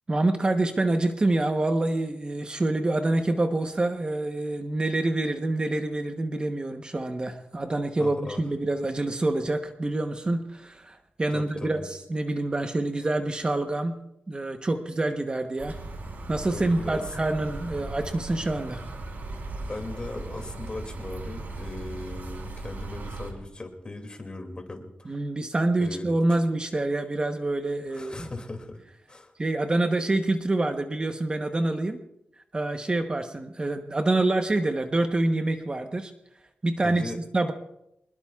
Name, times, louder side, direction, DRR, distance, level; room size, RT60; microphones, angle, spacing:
voice 1, 0.1-14.0 14.3-15.8 16.3-18.8 25.0-28.3 29.4-32.0 32.5-36.1 36.6-37.5, right 2 dB, 25° right, 6 dB, 1.0 m, -26 dB
voice 2, 8.0-8.4 11.3-11.9 16.5-17.1 19.7-25.1 25.8-26.1 27.9-28.8 29.1-29.3 36.8-37.2, left 2 dB, 30° left, 4 dB, 2.5 m, -38 dB
sound 1, 15.6-23.3, right 2 dB, 65° right, 3.1 m, -38 dB
24.5 x 21.0 x 2.4 m, 0.82 s
wide cardioid pair, 115°, 3 cm